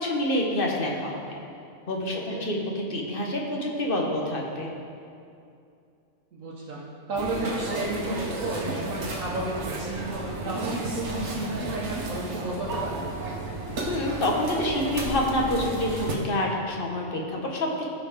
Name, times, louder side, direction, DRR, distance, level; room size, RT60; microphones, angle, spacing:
voice 1, 0.0-1.4 1.9-4.7 13.8-17.9, left 1 dB, 45° left, -1 dB, 1.3 m, -27 dB
voice 2, 2.1-2.5 6.3-10.0 10.4-13.0, right 2 dB, 80° right, -7 dB, 1.5 m, -32 dB
sound 1, 7.2-16.1, right 2 dB, 60° right, 1.3 m, -32 dB
15.0 x 5.3 x 3.7 m, 2.5 s
omnidirectional pair, 1.4 m